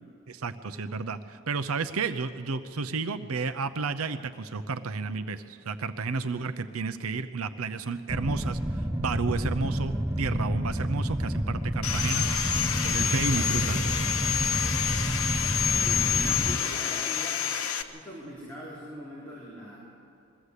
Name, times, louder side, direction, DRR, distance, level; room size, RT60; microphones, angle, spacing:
voice 1, 0.3-12.3 12.8-13.8, right 4 dB, 85° right, 10 dB, 0.7 m, -32 dB
sound 1, 8.1-16.6, equal, 10° right, 0.7 m, -30 dB
Sawing, 11.8-17.8, left 8 dB, 80° left, 1.0 m, -28 dB
voice 2, 13.1-13.7 15.6-19.8, right 1 dB, 5° left, -8 dB, 4.0 m, -42 dB
21.5 x 15.0 x 8.2 m, 2.6 s
head